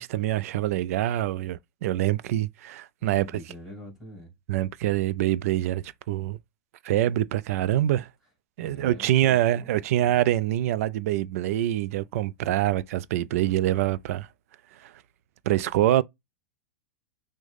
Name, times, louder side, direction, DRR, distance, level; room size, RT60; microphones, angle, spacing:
voice 1, 0.0-3.3 4.5-6.4 6.8-8.1 8.6-14.3 14.8-14.9 15.5-16.0, right 13 dB, 65° right, 0.4 m, -25 dB
voice 2, 3.0-4.3 8.6-10.2, left 1 dB, 5° right, 2.6 m, -45 dB
6.1 x 2.1 x 3.3 m
hypercardioid pair, 130°, 9 cm